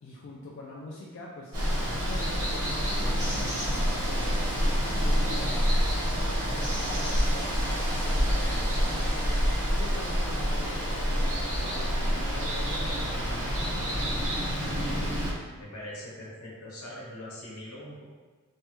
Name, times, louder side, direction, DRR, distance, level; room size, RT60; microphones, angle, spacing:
voice 1, 0.0-4.4 5.0-6.0 6.4-9.4 9.7-14.3, left 2 dB, 55° left, -5 dB, 0.4 m, -44 dB
Water, 1.5-15.3, equal, 85° right, 1.0 m, -27 dB
voice 2, 15.6-18.0, left 1 dB, 90° left, -6 dB, 1.0 m, -42 dB
3.1 x 2.2 x 2.9 m, 1.4 s
head